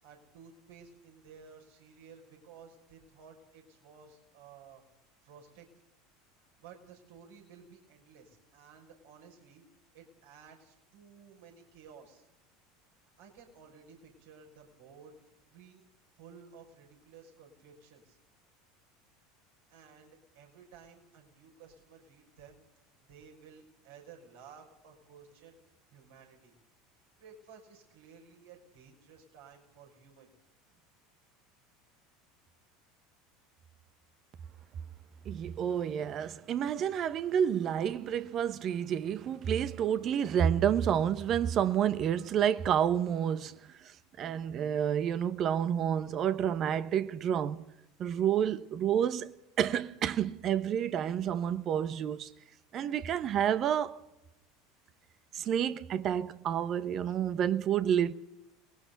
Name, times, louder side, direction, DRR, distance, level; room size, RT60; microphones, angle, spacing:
voice 1, 0.0-4.8 5.2-5.7 6.4-9.6 9.9-12.3 13.2-15.9 16.2-18.2 19.7-22.6 23.1-25.6 25.9-26.6 27.2-30.3, right 6 dB, 65° right, 6.4 m, -55 dB
voice 2, 35.3-43.6 44.2-47.6 48.0-49.3 49.6-52.3 52.7-54.0 55.3-58.1, right 9 dB, 40° right, 1.1 m, -29 dB
29.5 x 21.5 x 4.1 m
figure-of-eight pair, 75°, 0 cm